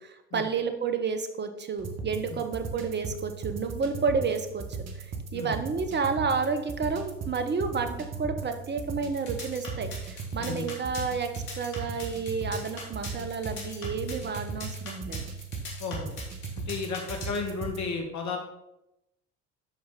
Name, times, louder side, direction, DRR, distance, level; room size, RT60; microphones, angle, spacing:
voice 1, 0.0-4.6 5.0-5.1 5.3-15.2, right 5 dB, 30° right, 8 dB, 1.2 m, -30 dB
sound 1, 1.8-17.8, right 4 dB, 45° right, 1.5 m, -38 dB
sound 2, 9.1-17.5, left 3 dB, 70° left, 2.8 m, -41 dB
voice 2, 15.8-16.1 16.7-18.4, left 5 dB, 50° left, 2 dB, 2.1 m, -33 dB
12.5 x 4.7 x 4.2 m, 0.88 s
hypercardioid pair, 65°, 37 cm